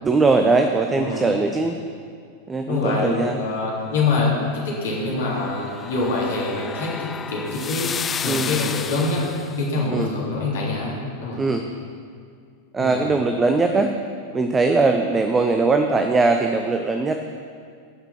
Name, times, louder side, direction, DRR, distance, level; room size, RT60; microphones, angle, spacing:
voice 1, 0.0-1.8 2.5-3.4 8.3-8.6 9.9-10.1 11.4-11.7 12.7-13.9 14.3-17.2, right 3 dB, 15° right, 5 dB, 0.6 m, -20 dB
voice 2, 0.9-1.2 2.7-9.3 9.6-11.4 12.8-13.0, left 3 dB, 60° left, -5 dB, 3.5 m, -25 dB
sound 1, 5.0-9.6, left 7 dB, 20° left, 0.3 m, -32 dB
17.0 x 5.9 x 5.9 m, 2.2 s
figure-of-eight pair, 90°, 0 cm